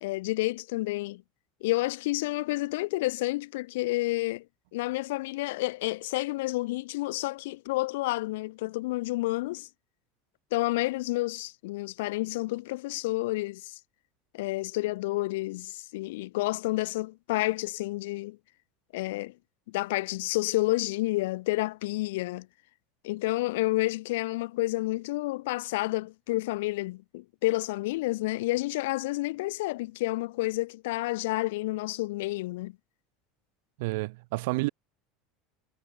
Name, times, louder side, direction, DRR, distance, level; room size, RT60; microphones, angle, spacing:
voice 1, 0.0-1.2 1.6-4.5 4.7-9.7 10.5-13.8 14.3-18.4 18.9-19.3 19.7-22.5 23.0-32.8, left 19 dB, 85° left, 0.7 m, -30 dB
voice 2, 33.8-34.7, right 24 dB, 75° right, 0.9 m, -29 dB
supercardioid pair, 145°, 0 cm